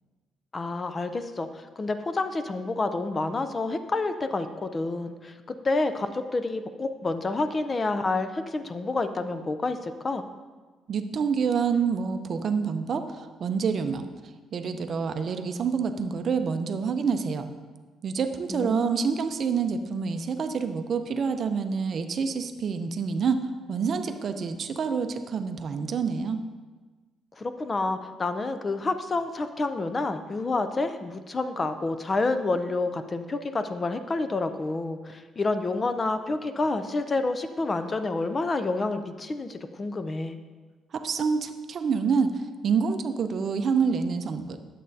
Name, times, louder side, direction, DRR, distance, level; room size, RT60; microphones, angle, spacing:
voice 1, 0.5-10.2 18.5-18.8 27.4-40.4, left 3 dB, 25° left, 9 dB, 0.4 m, -29 dB
voice 2, 10.9-14.1 14.5-17.5 18.0-23.4 23.7-26.4 40.9-44.6, right 5 dB, 45° right, 8 dB, 0.5 m, -27 dB
11.0 x 7.4 x 2.7 m, 1.3 s
cardioid pair, 140°, 0 cm